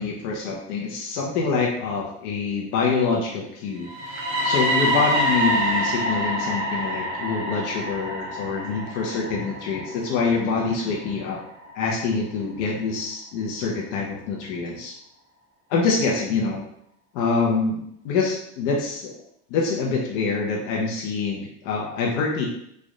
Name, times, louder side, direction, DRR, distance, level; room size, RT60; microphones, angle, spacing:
voice 1, 0.0-11.4 11.7-15.0 15.7-16.6 17.1-19.1 19.5-22.5, left 4 dB, 90° left, -2 dB, 0.8 m, -25 dB
sound 1, 3.8-11.7, equal, 35° right, 1.1 m, -26 dB
3.2 x 2.5 x 3.7 m, 0.74 s
supercardioid pair, 110°, 34 cm